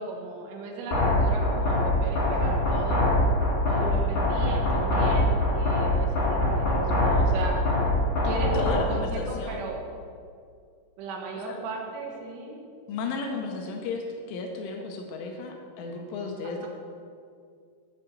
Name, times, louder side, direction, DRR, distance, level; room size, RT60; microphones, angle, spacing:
voice 1, 0.0-3.0 3.7-7.6 8.2-9.8 11.0-12.6 16.4-16.7, right 3 dB, 70° right, 0 dB, 3.1 m, -36 dB
sound 1, 0.9-8.9, left 1 dB, 50° left, 4.0 m, -24 dB
voice 2, 8.5-9.6 11.4-11.6 12.9-16.7, left 4 dB, 80° left, 2 dB, 3.2 m, -33 dB
9.0 x 5.7 x 8.1 m, 2.3 s
omnidirectional pair, 5.9 m